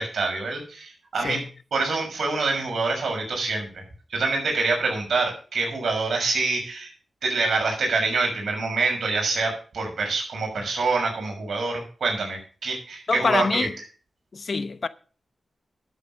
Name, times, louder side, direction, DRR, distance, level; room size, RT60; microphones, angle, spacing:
voice 1, 0.0-1.4 1.7-3.8 4.1-6.9 7.2-13.7, right 3 dB, 75° right, 6.5 m, -26 dB
voice 2, 13.1-13.7 14.3-14.9, left 4 dB, 60° left, 0.8 m, -25 dB
12.0 x 8.4 x 6.3 m
cardioid pair, 55°, 0 cm